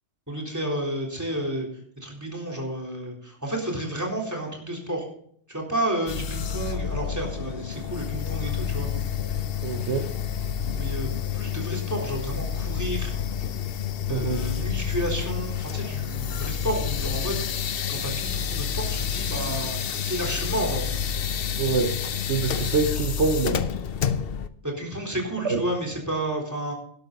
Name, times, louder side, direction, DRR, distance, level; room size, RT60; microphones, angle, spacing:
voice 1, 0.3-1.7 2.0-5.1 5.5-8.9 10.7-13.1 14.1-19.8 20.1-20.9 24.6-26.7, right 1 dB, 15° right, 1 dB, 3.7 m, -31 dB
sound 1, 6.1-24.5, left 8 dB, 60° left, 0.9 m, -29 dB
voice 2, 9.6-10.1 14.1-14.4 21.6-23.6 25.4-25.6, right 4 dB, 85° right, 5 dB, 1.5 m, -25 dB
12.0 x 11.5 x 4.0 m, 0.64 s
omnidirectional pair, 1.1 m